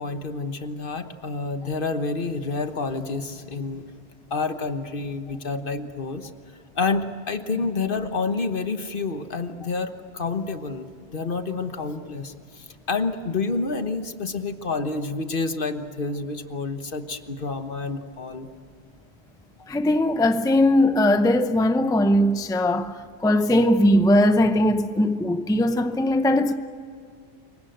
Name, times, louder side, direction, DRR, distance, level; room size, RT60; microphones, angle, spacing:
voice 1, 0.0-3.9 4.3-6.3 6.8-18.5 19.6-19.7, left 3 dB, 55° left, 1.4 m, -29 dB
voice 2, 19.7-22.9 23.2-26.5, left 1 dB, 5° left, 0.7 m, -19 dB
28.0 x 23.5 x 7.9 m
omnidirectional pair, 1.1 m